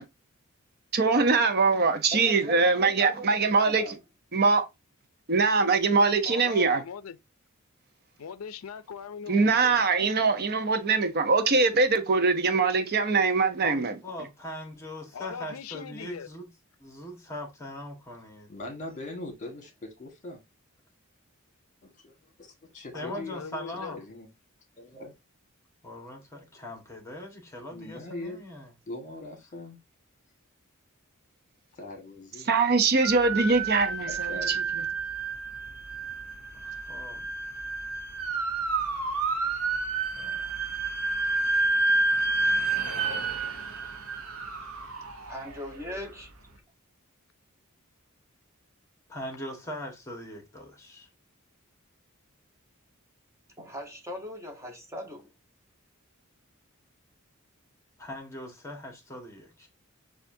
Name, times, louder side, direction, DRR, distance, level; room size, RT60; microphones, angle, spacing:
voice 1, 0.9-3.8 4.3-4.7 5.3-6.8 9.3-14.0 32.5-34.5, right 4 dB, 50° right, 0.7 m, -23 dB
voice 2, 2.1-3.9 45.3-46.3 53.6-55.3, left 1 dB, 15° right, 1.2 m, -39 dB
voice 3, 6.2-7.2 8.2-9.8 15.1-16.3 22.9-24.0, left 7 dB, 75° left, 0.5 m, -40 dB
voice 4, 13.6-16.5 16.8-18.5 22.9-24.0 25.8-28.7 36.6-37.2 38.6-38.7 40.1-40.6 49.1-51.1 58.0-59.7, left 1 dB, 15° left, 1.4 m, -41 dB
voice 5, 18.5-20.4 21.8-23.4 24.0-24.3 24.8-25.1 27.7-28.4 28.9-29.8 31.8-32.5 34.1-34.6, left 1 dB, 35° left, 1.4 m, -41 dB
sound 1, 33.0-46.1, right 3 dB, 85° right, 0.9 m, -30 dB
6.7 x 2.5 x 2.6 m
head